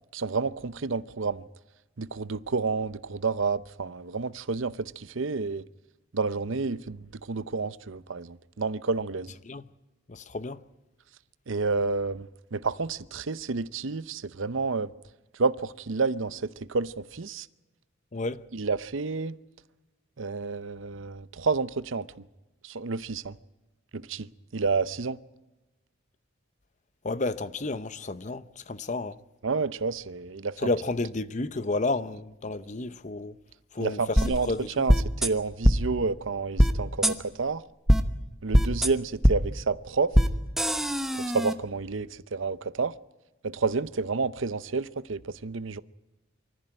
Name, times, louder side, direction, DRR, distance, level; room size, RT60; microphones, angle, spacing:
voice 1, 0.1-1.4 2.0-5.6 6.1-9.3 11.5-14.9 15.3-17.5 18.5-19.4 20.2-22.1 22.6-23.4 23.9-24.3 24.5-25.2 29.4-30.7 33.8-37.6 38.4-40.1 41.1-42.9 43.4-45.8, right 4 dB, 70° right, 0.7 m, -30 dB
voice 2, 10.1-10.6 18.1-18.4 27.0-29.2 30.6-33.4 33.7-34.2 34.5-34.7, left 2 dB, 35° left, 0.8 m, -31 dB
sound 1, 34.2-34.3 34.9-35.3 35.6-35.8 36.6-36.7 37.0-37.1 37.9-38.0 38.5-38.9 39.2-39.3 40.1-40.3 40.6-41.5, equal, ahead, 1.0 m, -20 dB
24.0 x 14.5 x 9.0 m
head